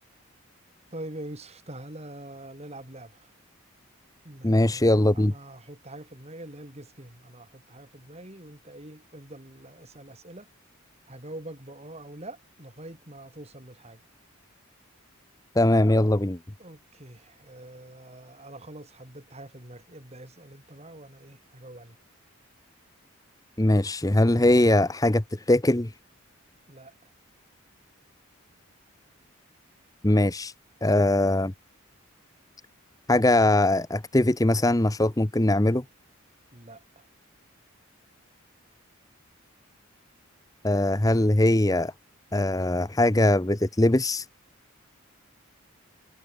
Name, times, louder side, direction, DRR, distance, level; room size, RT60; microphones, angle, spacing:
voice 1, 0.9-3.3 4.2-4.9 5.1-10.5 11.1-14.0 16.6-22.0 26.7-26.9 36.5-37.0, right 1 dB, 30° right, 3.2 m, -44 dB
voice 2, 4.4-5.3 15.5-16.4 23.6-25.9 30.0-30.5 30.8-31.5 33.1-35.8 40.6-41.9 42.3-44.2, left 1 dB, 15° left, 0.8 m, -21 dB
head